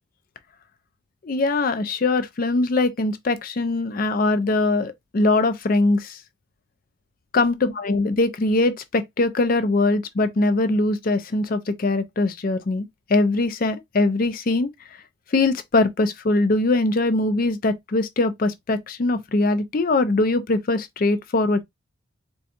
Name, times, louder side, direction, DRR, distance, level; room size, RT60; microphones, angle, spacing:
voice 1, 1.2-6.2 7.3-14.7 15.3-21.6, left 2 dB, 40° left, 0.4 m, -22 dB
4.1 x 2.3 x 2.5 m
head